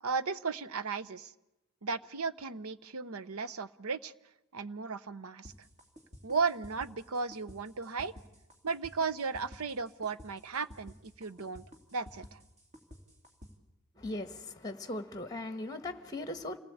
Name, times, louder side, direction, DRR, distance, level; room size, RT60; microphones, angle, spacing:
voice 1, 0.0-1.3 1.8-4.1 4.5-5.5 6.2-8.1 8.6-11.7 11.9-12.4, right 4 dB, 75° right, 15 dB, 0.8 m, -35 dB
sound 1, 5.5-13.5, equal, 30° right, 2.9 m, -52 dB
voice 2, 14.0-16.6, left 2 dB, 15° left, 9 dB, 1.2 m, -39 dB
28.0 x 18.5 x 8.6 m, 0.95 s
head